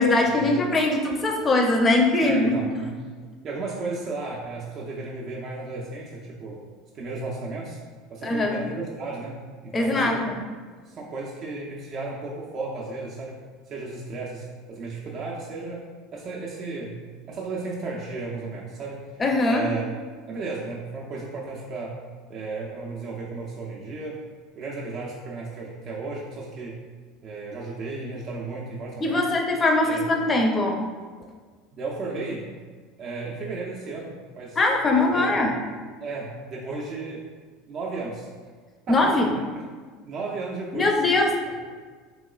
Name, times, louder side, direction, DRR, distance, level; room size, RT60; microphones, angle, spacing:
voice 1, 0.0-2.6 8.2-8.6 9.7-10.3 19.2-19.6 29.0-30.8 34.6-35.5 38.9-39.3 40.7-41.3, left 2 dB, 25° left, 2 dB, 0.5 m, -21 dB
voice 2, 2.2-2.9 3.4-6.7 6.9-7.8 8.1-9.4 9.6-10.2 10.9-13.4 13.7-17.0 17.3-19.1 19.4-19.8 20.3-22.0 22.3-24.2 24.6-26.8 27.2-29.3 29.8-30.0 31.7-32.5 33.0-34.6 34.9-35.5 36.0-37.3 37.7-38.3 38.9-39.6 40.0-41.0 41.5-41.6, right 3 dB, 45° right, -4 dB, 0.4 m, -34 dB
3.0 x 2.9 x 2.3 m, 1.5 s
hypercardioid pair, 95°, 0 cm